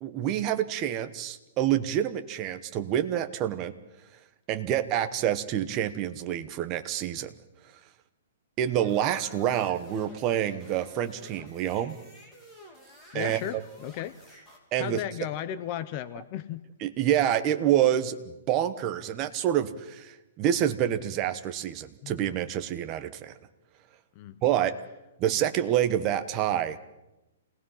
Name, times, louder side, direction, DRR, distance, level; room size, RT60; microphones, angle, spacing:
voice 1, 0.0-3.7 4.5-7.3 8.6-12.0 13.1-13.6 14.7-15.0 16.8-18.2 18.5-23.3 24.4-24.8 25.2-26.8, right 11 dB, 20° right, 9 dB, 1.0 m, -27 dB
sound 1, 8.8-14.6, equal, 5° left, 3.1 m, -52 dB
voice 2, 13.1-14.2 14.8-16.6 22.0-22.2 24.2-24.4, left 11 dB, 30° left, 13 dB, 0.7 m, -35 dB
27.5 x 18.5 x 5.7 m, 0.98 s
hypercardioid pair, 170°, 0 cm